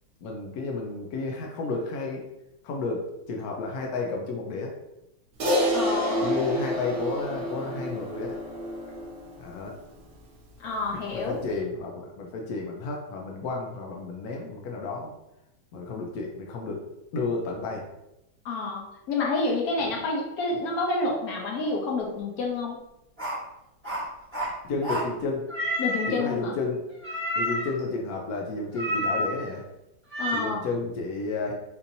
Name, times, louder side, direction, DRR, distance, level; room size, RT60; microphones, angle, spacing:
voice 1, 0.2-2.2 2.6-4.7 6.2-8.4 9.4-9.7 10.9-15.1 15.7-16.8 17.1-17.9 19.8-19.9 24.6-25.5 26.1-26.8 27.4-29.6 30.3-31.6, left 3 dB, 80° left, 0 dB, 0.8 m, -32 dB
Crash cymbal, 5.4-10.0, equal, 65° right, 0.8 m, -28 dB
voice 2, 5.7-6.3 10.6-11.4 18.4-18.8 19.1-22.8 25.8-26.5 30.2-30.7, left 3 dB, 60° left, -1 dB, 1.1 m, -28 dB
sound 1, 23.2-23.4 23.8-24.5 24.8-25.1 25.5-26.2 27.0-27.8 28.7-29.5 30.1-30.4, equal, 10° right, 0.9 m, -29 dB
4.3 x 2.7 x 2.6 m, 0.88 s
omnidirectional pair, 2.2 m